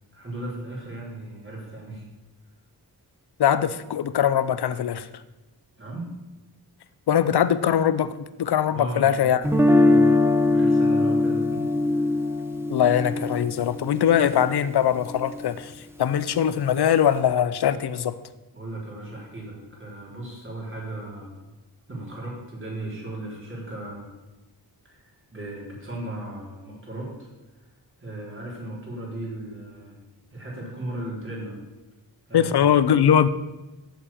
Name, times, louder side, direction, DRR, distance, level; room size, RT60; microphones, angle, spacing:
voice 1, 0.1-2.1 5.8-6.1 8.7-9.5 9.8-10.2 10.5-11.6 11.9-12.2 18.5-21.3 21.9-24.0 24.8-27.3 27.5-27.6 28.0-30.0 30.3-31.6 32.3-32.5, right 1 dB, 30° right, -4 dB, 4.0 m, -36 dB
voice 2, 3.4-5.1 7.1-8.1 8.4-9.4 12.7-15.7 16.0-18.2 32.3-33.3, left 9 dB, 75° left, 15 dB, 0.7 m, -21 dB
Guitar, 9.4-15.4, left 2 dB, 5° right, 1.0 m, -22 dB
8.0 x 7.4 x 8.5 m, 1.1 s
wide cardioid pair, 155°, 40 cm